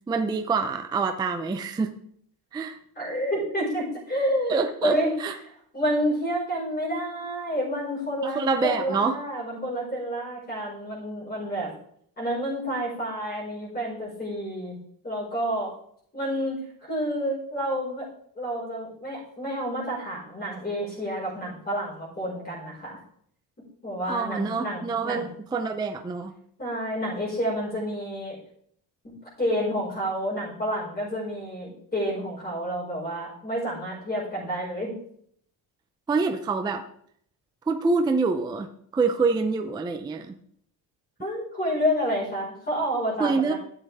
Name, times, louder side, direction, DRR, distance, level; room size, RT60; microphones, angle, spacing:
voice 1, 0.1-1.9 2.5-2.8 4.5-5.3 8.2-9.1 24.0-26.3 36.1-36.8 37.7-40.3 43.2-43.5, right 4 dB, 10° right, 5 dB, 0.4 m, -26 dB
voice 2, 2.9-5.2 5.4-11.7 12.2-14.8 15.0-15.7 16.1-18.1 18.3-23.0 23.8-25.3 26.6-28.3 29.0-35.0 41.2-43.6, equal, 20° left, -5 dB, 5.0 m, -29 dB
12.5 x 7.5 x 3.5 m, 0.66 s
cardioid pair, 165°, 46 cm